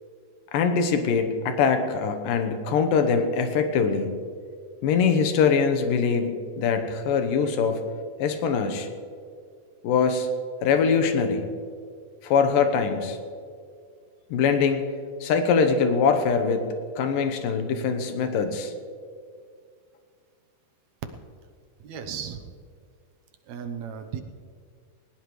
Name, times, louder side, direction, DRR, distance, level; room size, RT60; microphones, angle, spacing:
voice 1, 0.5-4.1 4.8-7.8 8.2-8.9 9.8-10.3 10.6-11.5 12.2-13.2 14.3-14.9 15.2-18.7, left 5 dB, 85° left, 7 dB, 2.8 m, -23 dB
voice 2, 21.8-22.6 23.5-24.2, right 7 dB, 70° right, 6 dB, 1.9 m, -35 dB
19.0 x 19.0 x 3.2 m, 2.2 s
omnidirectional pair, 3.8 m